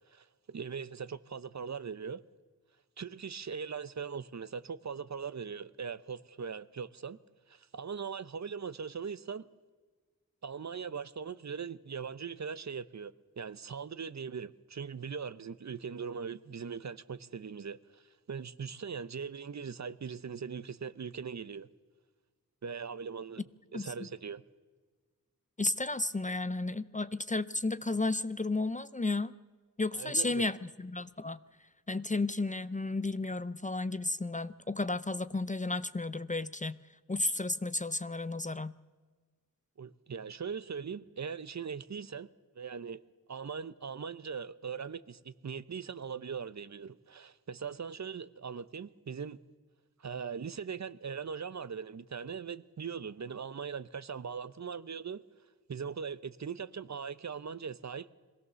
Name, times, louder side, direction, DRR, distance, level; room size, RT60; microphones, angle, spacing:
voice 1, 0.1-2.2 3.0-7.2 7.5-9.5 10.4-18.0 18.3-21.7 22.6-23.4 23.7-24.4 29.9-30.5 39.8-42.3 42.6-43.0 43.3-49.4 50.0-55.2 55.7-58.1, right 6 dB, 50° right, 0.7 m, -40 dB
voice 2, 25.6-29.4 29.8-31.4 31.9-36.8 37.1-38.8, left 2 dB, 20° left, 0.5 m, -33 dB
23.0 x 16.5 x 6.8 m
wide cardioid pair, 95°, 35 cm